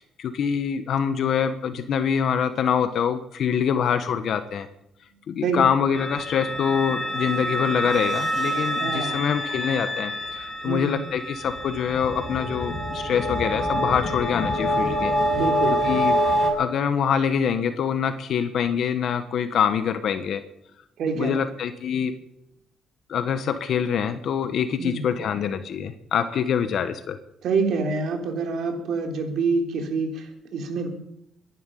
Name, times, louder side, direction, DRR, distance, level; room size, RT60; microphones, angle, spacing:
voice 1, 0.0-4.7 5.3-15.1 15.8-16.2 16.5-20.4 21.2-22.1 23.1-27.2, left 7 dB, 65° left, 9 dB, 1.3 m, -25 dB
sound 1, 5.9-16.5, equal, 40° left, 6.0 m, -26 dB
voice 2, 8.8-9.3 10.7-10.9 15.3-15.8 21.0-21.3 24.8-25.0 27.4-30.9, right 4 dB, 75° right, 4 dB, 3.7 m, -26 dB
23.0 x 11.0 x 5.6 m, 0.79 s
cardioid pair, 90°, 0 cm